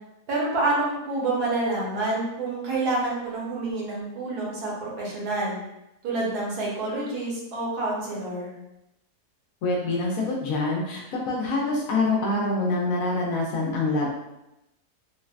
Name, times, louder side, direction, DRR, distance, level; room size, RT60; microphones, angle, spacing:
voice 1, 0.3-5.6 6.0-8.5, right 2 dB, 75° right, -5 dB, 1.4 m, -28 dB
voice 2, 9.6-14.1, left 2 dB, 70° left, -2 dB, 0.9 m, -25 dB
3.8 x 2.1 x 2.4 m, 0.89 s
omnidirectional pair, 1.7 m